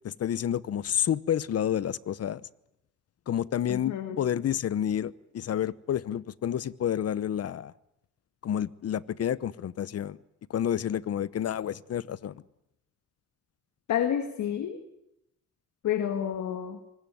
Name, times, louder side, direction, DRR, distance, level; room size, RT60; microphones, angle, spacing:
voice 1, 0.0-2.4 3.3-7.7 8.4-10.2 10.5-12.4, left 10 dB, 55° left, 19 dB, 1.0 m, -29 dB
voice 2, 3.7-4.2 13.9-14.8 15.8-16.8, left 9 dB, 70° left, 8 dB, 2.2 m, -29 dB
24.5 x 20.5 x 9.4 m, 0.83 s
cardioid pair, 90°, 30 cm